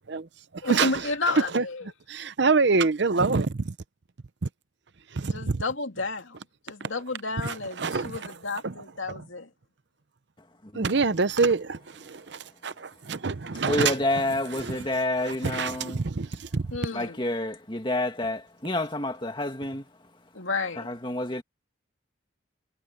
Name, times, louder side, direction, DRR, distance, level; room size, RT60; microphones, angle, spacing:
voice 1, 0.6-1.9 5.3-6.4 6.6-9.5 16.7-17.2 20.3-20.9, left 3 dB, 80° left, 2.6 m, -31 dB
voice 2, 2.1-3.7 5.1-5.6 6.8-6.9 7.4-8.3 8.6-8.7 10.7-14.0 14.5-14.8 15.2-16.6, right 4 dB, 60° right, 0.7 m, -26 dB
voice 3, 10.6-11.0 13.6-16.0 16.9-19.8 20.8-21.4, left 1 dB, 25° left, 2.2 m, -29 dB
head